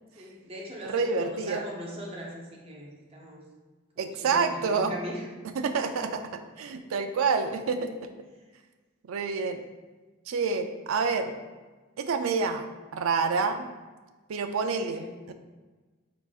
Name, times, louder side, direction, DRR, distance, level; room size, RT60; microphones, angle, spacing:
voice 1, 0.1-3.4 4.0-5.3 5.6-5.9 14.8-15.1, equal, 25° right, -3 dB, 0.6 m, -40 dB
voice 2, 0.8-1.6 4.0-4.9 5.6-7.9 9.1-9.6 10.3-11.3 12.0-12.7 12.9-13.7 14.3-15.3, right 5 dB, 75° right, 7 dB, 0.4 m, -28 dB
4.7 x 3.8 x 2.4 m, 1.3 s
head